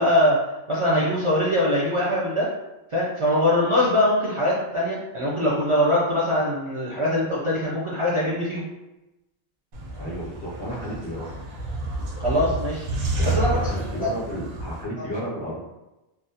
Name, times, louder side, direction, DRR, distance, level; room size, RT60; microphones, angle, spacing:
voice 1, 0.0-2.5 2.9-8.6 12.2-12.9 13.3-13.7 15.0-15.1, left 1 dB, 50° right, -6 dB, 0.4 m, -22 dB
sound 1, 9.7-14.8, right 2 dB, 85° right, 0.8 m, -29 dB
voice 2, 10.0-11.3 13.2-15.6, equal, 40° left, -7 dB, 0.4 m, -32 dB
2.3 x 2.0 x 2.7 m, 0.99 s
omnidirectional pair, 1.0 m